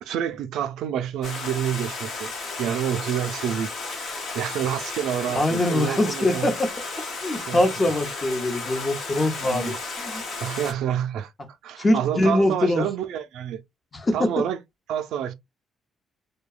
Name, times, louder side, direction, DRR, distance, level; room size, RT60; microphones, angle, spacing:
voice 1, 0.0-2.3 2.6-3.7 4.0-6.5 7.3-7.7 9.4-9.7 10.4-11.3 11.6-13.6 14.1-14.6 14.9-15.3, right 9 dB, 85° right, 0.4 m, -28 dB
Stream, 1.2-10.7, left 3 dB, 75° left, 1.0 m, -34 dB
voice 2, 5.3-6.7 7.2-10.2 11.8-12.9 13.9-14.3, left 1 dB, 30° left, 0.7 m, -23 dB
2.7 x 2.1 x 2.3 m
cardioid pair, 90°, 0 cm